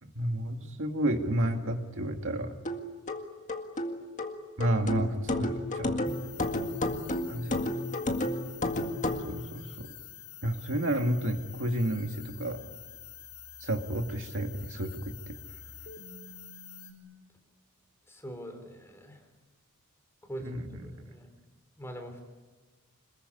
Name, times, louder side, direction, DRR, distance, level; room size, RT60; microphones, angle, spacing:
voice 1, 0.0-2.6 4.6-6.2 7.3-7.8 9.2-9.9 10.4-12.6 13.6-15.4 20.4-21.0, right 1 dB, 60° right, 5 dB, 2.1 m, -31 dB
sound 1, 2.6-9.3, left 1 dB, 35° left, 1.9 m, -32 dB
sound 2, 6.0-16.9, left 7 dB, 50° left, 4.6 m, -47 dB
voice 2, 18.1-19.2 20.3-21.3 21.8-22.3, right 1 dB, 10° left, 5 dB, 3.5 m, -43 dB
26.5 x 21.5 x 9.8 m, 1.3 s
head